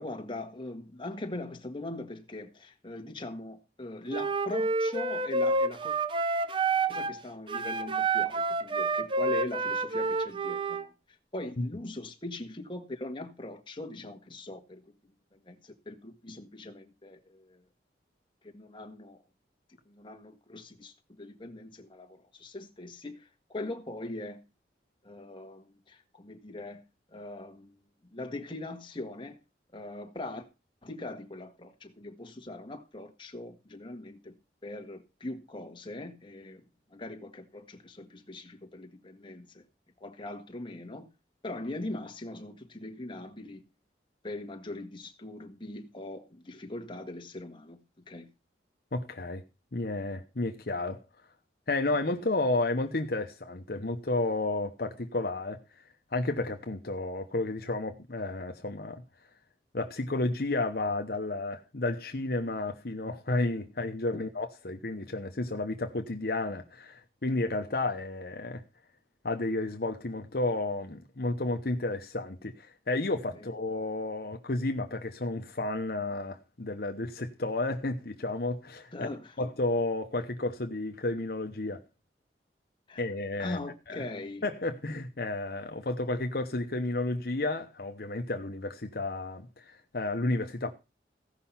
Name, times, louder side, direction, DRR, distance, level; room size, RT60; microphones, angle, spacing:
voice 1, 0.0-5.9 6.9-14.8 15.3-17.6 18.5-19.2 19.8-24.4 25.0-26.8 27.1-27.8 28.1-29.4 29.7-30.5 30.8-34.3 34.6-36.6 36.9-39.6 40.0-41.1 41.4-43.6 44.2-48.3 64.1-64.3 73.3-73.4 78.9-79.3 82.9-83.1 83.4-84.4, left 2 dB, 30° left, 1.7 m, -41 dB
Wind instrument woodwind instrument, 4.1-7.2 7.5-10.9, right 3 dB, 30° right, 0.8 m, -29 dB
voice 2, 48.9-49.4 49.7-51.0 51.7-55.6 56.1-59.0 59.7-68.6 69.2-79.1 79.4-81.8 83.0-83.6 83.9-84.0 84.4-90.7, left 2 dB, 60° left, 1.0 m, -32 dB
16.0 x 5.7 x 5.7 m
head